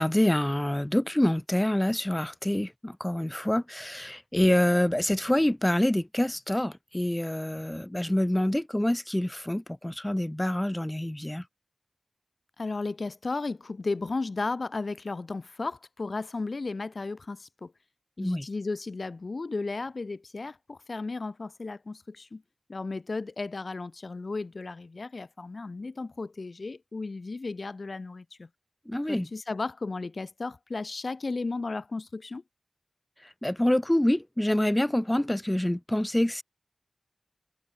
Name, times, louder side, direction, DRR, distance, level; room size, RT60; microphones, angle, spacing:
voice 1, 0.0-11.4 18.2-18.5 28.9-29.3 33.4-36.4, left 1 dB, 15° left, 1.0 m, -26 dB
voice 2, 12.6-17.7 18.2-22.4 22.7-28.5 29.1-32.4, left 3 dB, 70° left, 0.7 m, -34 dB
wide cardioid pair, 50°, 0 cm